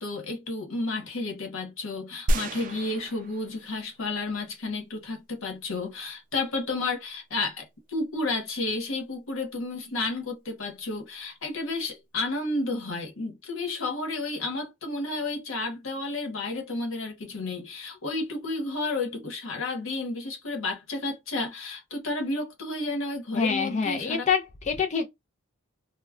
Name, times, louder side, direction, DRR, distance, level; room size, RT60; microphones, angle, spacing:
voice 1, 0.0-24.3, left 2 dB, 90° left, 0.9 m, -31 dB
sound 1, 2.3-4.0 4.5-4.6, equal, 40° right, 0.3 m, -30 dB
voice 2, 23.4-25.1, left 6 dB, 35° left, 0.4 m, -26 dB
2.2 x 2.1 x 3.4 m
head